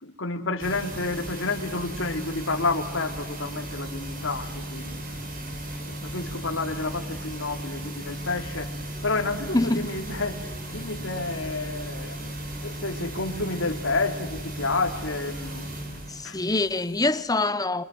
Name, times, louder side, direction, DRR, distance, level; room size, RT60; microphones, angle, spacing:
voice 1, 0.0-5.2 5.8-8.7 9.0-10.4 10.7-12.3 12.6-15.7 16.2-16.4, left 3 dB, 60° left, 3.3 m, -30 dB
sound 1, 0.6-17.3, right 1 dB, 40° right, 5.4 m, -36 dB
voice 2, 9.5-9.9 16.1-17.8, left 2 dB, 15° left, 1.0 m, -25 dB
28.0 x 27.0 x 7.8 m
head